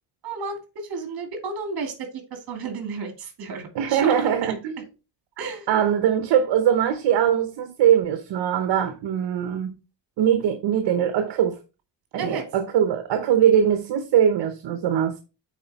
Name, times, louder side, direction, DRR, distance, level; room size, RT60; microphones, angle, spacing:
voice 1, 0.2-4.5 5.4-5.7 12.2-12.4, right 4 dB, 60° right, 2.5 m, -32 dB
voice 2, 3.7-4.8 5.7-9.8 10.2-11.6 12.1-15.2, right 9 dB, 75° right, 0.9 m, -21 dB
8.6 x 4.4 x 4.1 m
cardioid pair, 135°, 42 cm